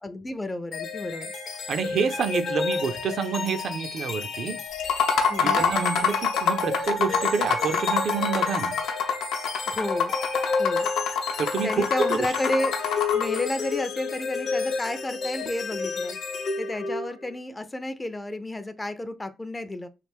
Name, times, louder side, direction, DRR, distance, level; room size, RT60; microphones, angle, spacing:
voice 1, 0.0-1.3 5.3-5.6 9.7-10.2 10.6-10.9 11.6-12.8 13.1-16.2 16.6-19.9, left 1 dB, 15° left, 0.4 m, -31 dB
sound 1, 0.7-17.4, left 4 dB, 60° left, 0.7 m, -31 dB
voice 2, 1.7-4.6 5.4-8.7 11.4-12.3, right 5 dB, 60° right, 0.4 m, -28 dB
sound 2, 4.8-13.4, left 6 dB, 90° left, 0.7 m, -25 dB
3.2 x 2.5 x 3.3 m
cardioid pair, 90°, 0 cm